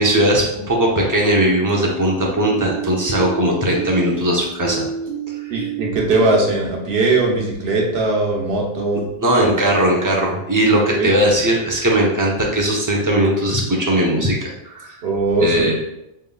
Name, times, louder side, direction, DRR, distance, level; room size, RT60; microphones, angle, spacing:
voice 1, 0.0-4.8 5.5-5.7 9.2-15.0 15.4-15.7, right 1 dB, 20° right, -2 dB, 0.7 m, -18 dB
sound 1, 1.4-6.5, right 6 dB, 45° right, 1.1 m, -30 dB
voice 2, 5.5-9.0 11.0-11.1 15.0-15.7, right 2 dB, 70° right, -1 dB, 1.1 m, -19 dB
5.6 x 3.6 x 2.3 m, 0.87 s
omnidirectional pair, 1.1 m